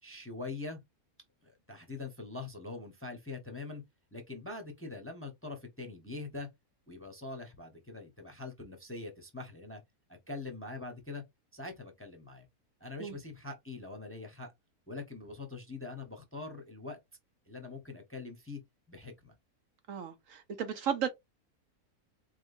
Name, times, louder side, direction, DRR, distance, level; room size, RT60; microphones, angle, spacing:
voice 1, 0.0-0.8 1.4-3.8 4.1-6.5 6.9-9.8 10.1-11.2 11.5-12.4 12.8-14.5 14.9-17.0 17.5-18.6 18.9-19.4, left 3 dB, 10° left, 0.8 m, -43 dB
voice 2, 19.9-21.1, right 8 dB, 65° right, 1.0 m, -34 dB
4.3 x 3.6 x 2.6 m
omnidirectional pair, 1.6 m